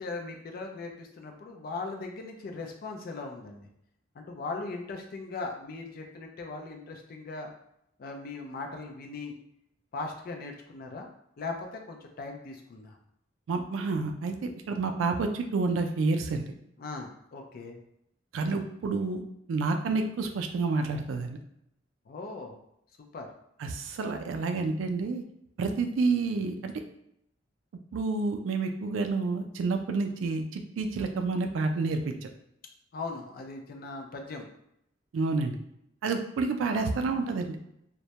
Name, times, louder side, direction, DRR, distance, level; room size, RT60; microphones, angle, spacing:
voice 1, 0.0-3.7 4.2-7.5 8.0-9.3 9.9-11.1 11.4-13.0 16.8-17.8 22.1-22.6 23.0-23.3 32.9-34.5, left 3 dB, 50° left, 3 dB, 0.4 m, -39 dB
voice 2, 13.5-16.4 18.3-19.2 19.5-21.4 23.6-25.2 25.6-26.7 27.9-32.3 35.1-35.6 36.0-37.7, right 3 dB, 85° right, 5 dB, 0.3 m, -29 dB
2.1 x 2.1 x 2.8 m, 0.76 s
head